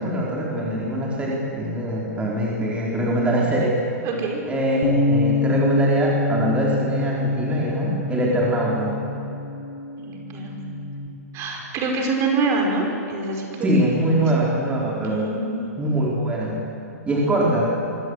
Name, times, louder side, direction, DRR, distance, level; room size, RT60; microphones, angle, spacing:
voice 1, 0.0-3.8 4.5-9.0 13.6-15.3 15.8-16.6 17.0-17.7, right 1 dB, 15° right, -4 dB, 4.3 m, -23 dB
voice 2, 4.0-4.4 10.1-10.8 11.3-14.2 14.9-15.7, right 3 dB, 35° right, 1 dB, 5.0 m, -26 dB
Bass guitar, 4.8-11.1, left 3 dB, 50° left, 2.6 m, -25 dB
24.0 x 18.5 x 8.1 m, 2.9 s
hypercardioid pair, 115°, 9 cm